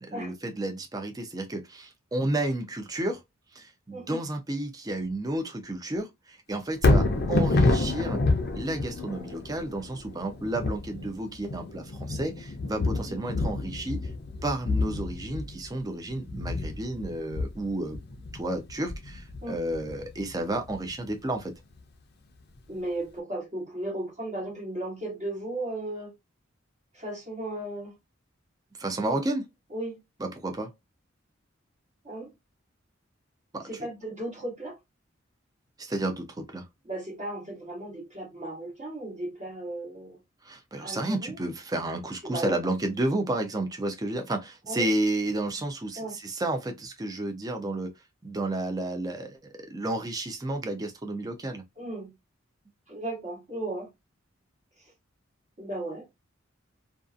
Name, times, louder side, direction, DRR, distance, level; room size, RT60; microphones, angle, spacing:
voice 1, 0.0-3.2 3.5-8.2 8.5-14.0 14.4-18.0 18.3-21.5 28.8-29.4 30.2-30.7 33.5-33.7 35.8-36.7 40.4-47.9 48.2-49.4 49.7-51.6, right 1 dB, 20° right, 0.5 m, -31 dB
Thunder, 6.7-20.9 21.4-21.5, left 2 dB, 55° left, 0.5 m, -28 dB
voice 2, 22.7-26.1 26.9-28.0 29.0-29.2 29.7-30.0 32.0-32.3 33.7-34.8 36.8-40.2 40.8-41.4 42.2-42.6 44.7-44.9 46.0-46.2 51.8-52.1 52.9-53.9 54.8-54.9 55.6-56.1, right 1 dB, 35° right, 1.0 m, -35 dB
2.6 x 2.4 x 2.4 m
head